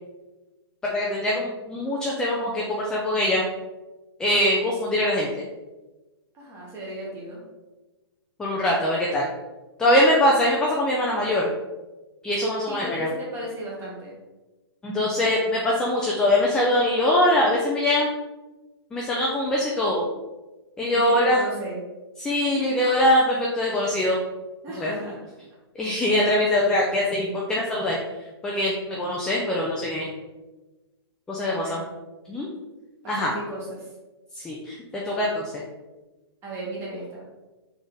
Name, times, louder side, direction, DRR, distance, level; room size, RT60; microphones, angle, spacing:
voice 1, 0.9-3.4 4.2-5.4 8.4-9.3 9.8-11.5 12.2-13.1 14.8-18.1 18.9-20.1 20.8-21.4 22.2-24.2 24.7-24.9 25.8-28.0 28.4-30.1 31.3-31.8 32.3-32.5 33.1-33.3 34.3-35.5, left 1 dB, 5° left, -3 dB, 0.3 m, -23 dB
voice 2, 6.3-7.4 12.7-14.1 20.9-21.8 22.6-23.0 24.6-25.2 26.0-26.2 31.4-31.8 33.0-33.8 36.4-37.2, equal, 20° right, -4 dB, 1.3 m, -35 dB
3.9 x 3.4 x 3.9 m, 1.1 s
hypercardioid pair, 155°, 14 cm